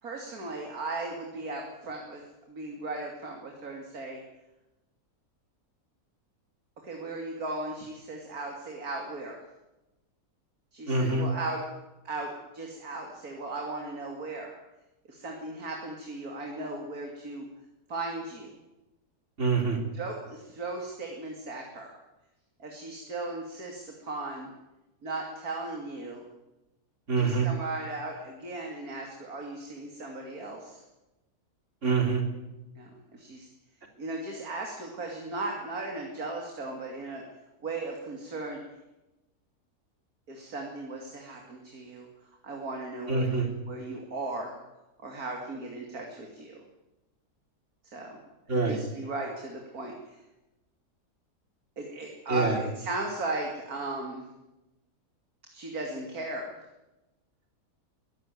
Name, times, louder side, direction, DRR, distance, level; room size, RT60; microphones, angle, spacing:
voice 1, 0.0-2.2 2.5-4.2 6.8-9.4 10.7-11.7 12.0-14.5 15.1-17.4 17.9-18.5 19.9-21.9 22.6-24.5 25.0-26.3 27.2-30.8 32.7-33.5 34.0-37.2 37.6-38.6 40.3-42.1 42.4-44.5 45.0-46.6 47.9-48.2 48.5-50.2 51.8-54.2 55.5-56.5, right 2 dB, 65° right, 1 dB, 3.2 m, -37 dB
voice 2, 10.9-11.3 19.4-19.8 27.1-27.5 31.8-32.2 43.1-43.5 48.5-48.8 52.3-52.6, right 4 dB, 45° right, 4 dB, 3.7 m, -25 dB
22.5 x 14.0 x 9.6 m, 1.0 s
omnidirectional pair, 1.7 m